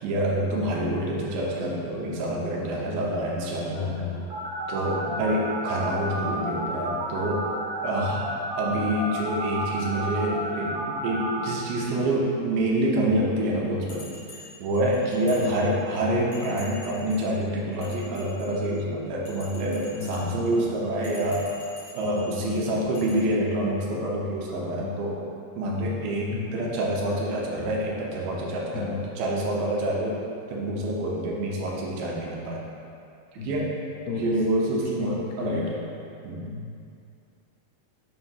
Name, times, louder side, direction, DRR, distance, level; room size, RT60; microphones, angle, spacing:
voice 1, 0.0-3.9 4.7-7.5 7.8-8.3 8.6-14.1 14.3-21.5 21.9-25.3 25.6-30.2 30.5-32.7 33.3-33.7 34.1-35.7 36.2-36.4, right 1 dB, 80° right, -3 dB, 2.6 m, -27 dB
voice 2, 3.7-4.3 5.1-5.3 15.4-15.8 20.0-20.4 22.0-22.6 22.8-23.0 24.6-25.1 26.3-26.6 27.6-27.7 28.7-29.0 33.4-33.7 34.1-34.3 34.8-35.1 35.4-35.7 36.4-36.9, left 6 dB, 80° left, -2 dB, 2.2 m, -34 dB
sound 1, 4.3-11.4, right 2 dB, 65° right, 1.8 m, -31 dB
Bell, 13.9-15.9 16.3-17.3 17.7-18.7 19.2-20.5 21.0-22.3 22.9-23.1, left 2 dB, 60° left, 1.3 m, -47 dB
7.4 x 2.6 x 5.6 m, 2.5 s
omnidirectional pair, 4.5 m